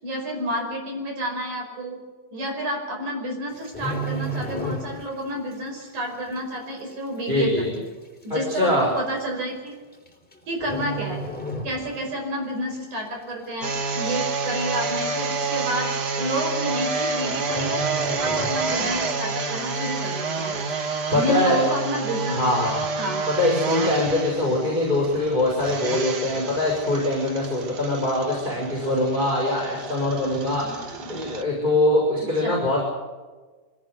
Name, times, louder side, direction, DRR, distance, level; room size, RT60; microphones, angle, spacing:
voice 1, 0.0-2.0 2.3-7.9 8.2-9.8 10.5-11.2 11.6-20.6 21.1-22.4 23.0-23.2 30.6-31.1 32.4-32.6, right 1 dB, 65° right, 3 dB, 6.5 m, -30 dB
sound 1, 3.5-5.3 5.5-5.8 6.4-6.5 7.3-7.4 7.7-7.8 8.6-8.8 9.9-10.3 10.6-12.2 12.5-12.7 13.2-13.8 14.1-14.2 14.4-14.5 14.9-15.0 16.0-16.1 16.4-16.7 16.9-17.1 17.4-19.1 19.5-19.6, right 2 dB, 5° left, 2.9 m, -32 dB
voice 2, 7.3-7.7 8.3-8.9 21.1-21.7 22.3-22.8 23.4-32.9, left 1 dB, 15° right, -2 dB, 6.1 m, -23 dB
sound 2, 13.6-31.4, right 4 dB, 45° right, 1.3 m, -29 dB
23.5 x 17.5 x 8.2 m, 1.3 s
omnidirectional pair, 3.7 m